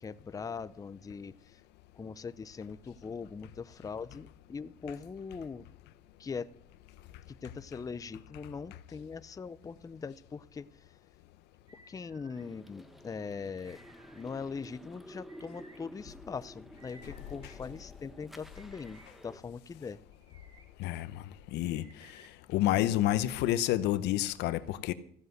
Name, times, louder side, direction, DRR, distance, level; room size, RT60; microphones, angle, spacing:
voice 1, 0.0-1.6 1.9-5.7 6.2-6.5 7.3-10.8 11.9-13.8 14.2-20.0, left 5 dB, 20° left, 0.5 m, -41 dB
sound 1, 11.7-12.5 13.6-14.2 15.3-15.8 16.8-17.6 18.5-19.1 20.1-20.7 21.7-22.3, right 1 dB, 25° right, 3.0 m, -59 dB
sound 2, 12.4-19.4, equal, ahead, 1.0 m, -52 dB
voice 2, 20.8-21.2 21.5-21.8 22.5-24.9, left 13 dB, 90° left, 0.8 m, -29 dB
14.5 x 7.9 x 7.9 m
cardioid pair, 110°, 17 cm